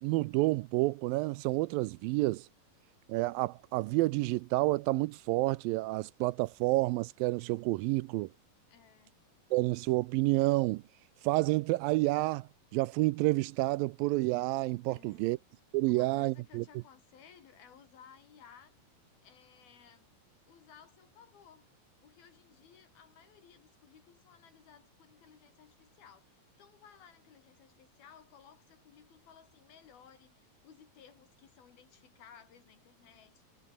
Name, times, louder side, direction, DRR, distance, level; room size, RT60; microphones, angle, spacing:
voice 1, 0.0-2.5 3.1-8.3 9.5-10.8 11.2-15.4 15.7-16.6, right 20 dB, 80° right, 2.2 m, -29 dB
voice 2, 8.7-9.1 14.9-15.3 15.8-18.8 19.2-20.1 20.5-21.7 22.0-33.4, left 8 dB, 80° left, 5.0 m, -58 dB
omnidirectional pair, 4.3 m